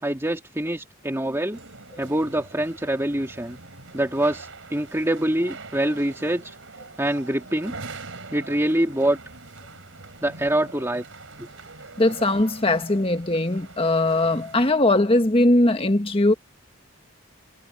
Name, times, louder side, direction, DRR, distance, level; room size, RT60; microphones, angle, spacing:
voice 1, 0.0-1.6 2.0-3.6 3.9-6.6 7.0-7.7 8.3-9.2 10.2-11.0 11.4-11.5, right 1 dB, 15° right, 2.5 m, -25 dB
sound 1, 1.5-14.7, right 3 dB, 70° right, 4.5 m, -43 dB
voice 2, 12.0-16.3, left 2 dB, 25° left, 1.6 m, -20 dB
head